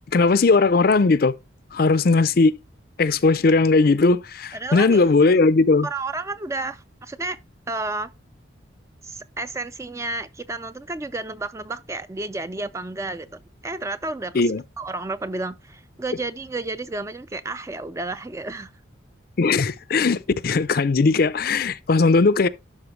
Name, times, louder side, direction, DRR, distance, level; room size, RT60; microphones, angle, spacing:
voice 1, 0.1-1.3 1.7-2.6 3.0-5.9 14.3-14.6 19.4-22.5, left 3 dB, 50° left, 0.5 m, -18 dB
voice 2, 4.5-5.3 5.8-7.4 7.7-8.1 9.0-13.3 13.6-14.4 14.8-18.7, right 2 dB, 15° right, 0.3 m, -31 dB
12.0 x 4.3 x 3.2 m
head